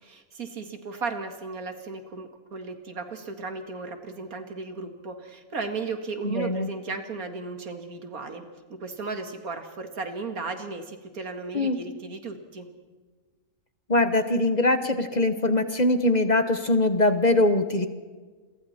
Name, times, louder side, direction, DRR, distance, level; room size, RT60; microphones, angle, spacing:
voice 1, 0.0-12.7, right 4 dB, 85° right, 6 dB, 2.4 m, -35 dB
voice 2, 6.2-6.7 11.5-11.8 13.9-17.9, left 2 dB, 30° left, 9 dB, 1.2 m, -22 dB
29.0 x 23.0 x 4.3 m, 1.4 s
omnidirectional pair, 1.5 m